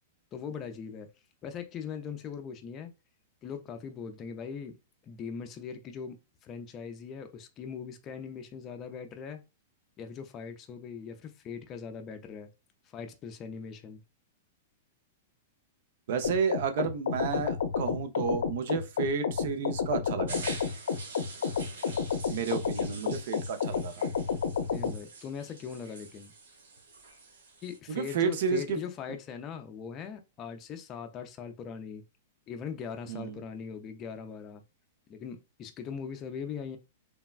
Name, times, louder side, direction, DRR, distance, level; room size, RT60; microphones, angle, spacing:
voice 1, 0.3-1.1 1.4-2.9 3.4-4.7 5.0-9.4 10.0-12.5 12.9-14.0 24.7-26.3 27.6-32.0 32.5-34.6 35.1-36.8, left 6 dB, 25° left, 0.4 m, -40 dB
voice 2, 16.1-20.5 22.3-24.1 27.9-28.8 33.1-33.4, right 5 dB, 60° right, 0.5 m, -31 dB
sound 1, 16.2-25.0, left 6 dB, 85° left, 0.5 m, -31 dB
sound 2, 20.3-27.8, right 4 dB, 85° right, 1.0 m, -46 dB
3.3 x 2.1 x 2.3 m
hypercardioid pair, 145°, 0 cm